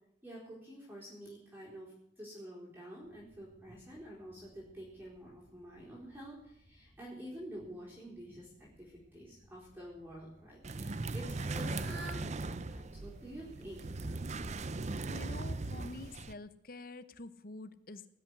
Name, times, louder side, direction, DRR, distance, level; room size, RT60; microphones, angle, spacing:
voice 1, 0.2-13.9, equal, 10° right, -5 dB, 4.2 m, -49 dB
sound 1, 3.0-16.1, equal, 10° left, 5.7 m, -66 dB
sound 2, 10.6-16.3, right 3 dB, 40° right, 0.6 m, -39 dB
Fowl / Bird, 11.2-16.2, right 2 dB, 85° right, 3.5 m, -54 dB
voice 2, 14.8-18.1, left 2 dB, 55° left, 12 dB, 1.0 m, -48 dB
19.5 x 6.7 x 9.7 m, 0.75 s
head